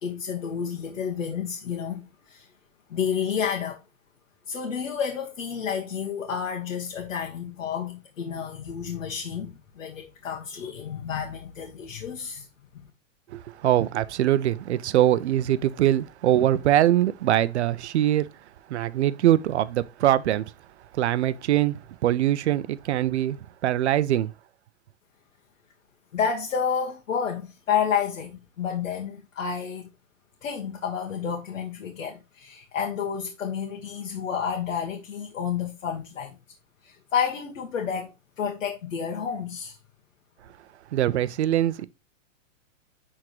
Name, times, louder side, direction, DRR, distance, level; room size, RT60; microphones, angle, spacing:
voice 1, 0.0-2.5 2.9-3.8 4.5-12.5 12.7-12.9 26.1-29.9 30.4-36.3 36.8-39.8, left 7 dB, 80° left, 1.6 m, -30 dB
voice 2, 13.3-18.3 18.7-20.4 21.0-23.4 23.6-24.3 40.9-41.9, right 12 dB, 60° right, 0.6 m, -23 dB
10.5 x 3.7 x 3.0 m
hypercardioid pair, 165°, 39 cm